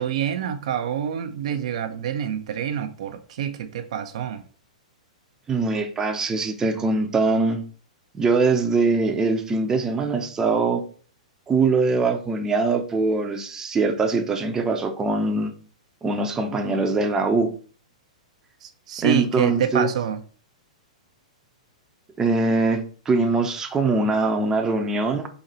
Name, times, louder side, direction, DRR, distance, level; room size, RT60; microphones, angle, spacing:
voice 1, 0.0-4.4 18.6-20.2, right 9 dB, 60° right, 0.4 m, -27 dB
voice 2, 5.5-7.6 8.1-10.9 11.5-15.5 16.0-17.5 19.0-19.9 22.2-25.3, right 3 dB, 15° right, 0.6 m, -22 dB
4.0 x 2.8 x 4.1 m
hypercardioid pair, 115°, 4 cm